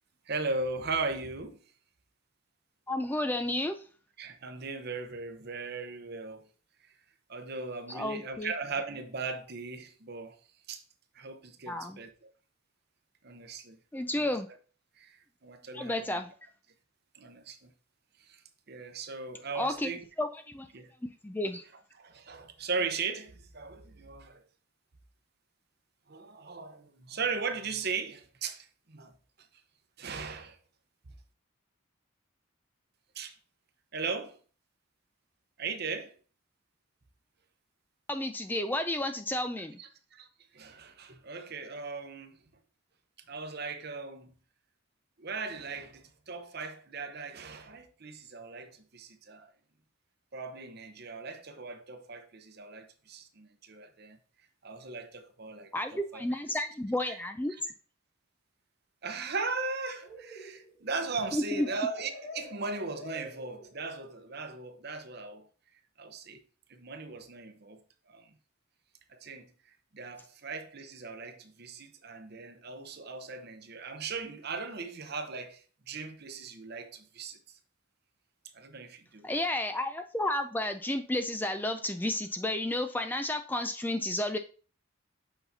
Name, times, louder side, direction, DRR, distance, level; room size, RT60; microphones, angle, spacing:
voice 1, 0.3-1.6 4.2-6.4 7.3-10.4 10.7-10.8 11.1-12.3 13.2-13.8 14.1-14.3 15.0-16.2 17.1-17.7 18.2-18.4 18.7-20.1 20.7-20.9 22.0-24.4 26.1-29.1 30.0-30.6 33.1-33.4 33.9-34.4 35.6-36.2 39.8-40.3 40.5-42.4 43.3-44.3 45.2-49.5 50.3-54.2 54.6-56.6 57.1-57.2 57.5-57.6 59.0-65.5 66.0-66.4 66.7-68.3 69.1-69.5 69.9-77.4 78.5-79.3, right 4 dB, 50° right, 0.8 m, -38 dB
voice 2, 2.9-3.8 7.9-8.5 11.7-12.0 13.9-14.5 15.7-16.3 19.5-19.9 20.2-20.7 21.2-21.6 38.1-39.8 55.7-57.5 61.3-61.7 79.2-84.4, left 1 dB, 10° left, 0.3 m, -31 dB
sound 1, 59.9-64.0, left 1 dB, 70° left, 2.9 m, -46 dB
8.0 x 5.7 x 2.7 m
head